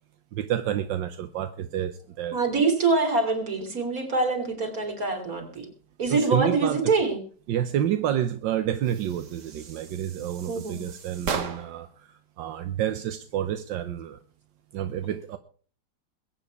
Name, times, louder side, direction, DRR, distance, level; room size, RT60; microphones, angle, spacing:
voice 1, 0.3-2.4 6.1-6.9 7.5-14.2 14.7-15.4, right 10 dB, 80° right, 10 dB, 1.5 m, -29 dB
voice 2, 2.3-5.7 6.0-7.2 10.5-10.8, right 3 dB, 50° right, 4 dB, 3.6 m, -25 dB
sound 1, 8.8-11.9, right 6 dB, 65° right, 2.0 m, -36 dB
21.5 x 9.2 x 4.7 m, 0.43 s
omnidirectional pair, 2.0 m